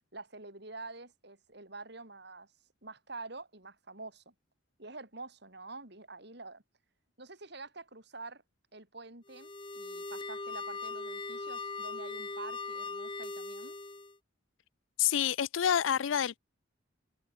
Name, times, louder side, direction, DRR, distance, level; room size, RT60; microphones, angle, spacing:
voice 1, 0.1-2.5 2.8-4.3 4.8-6.6 7.2-8.4 8.7-13.8, right 3 dB, 55° right, 4.7 m, -47 dB
sound 1, 9.3-14.2, left 3 dB, 25° left, 1.4 m, -40 dB
voice 2, 15.0-16.4, left 9 dB, 75° left, 0.4 m, -28 dB
head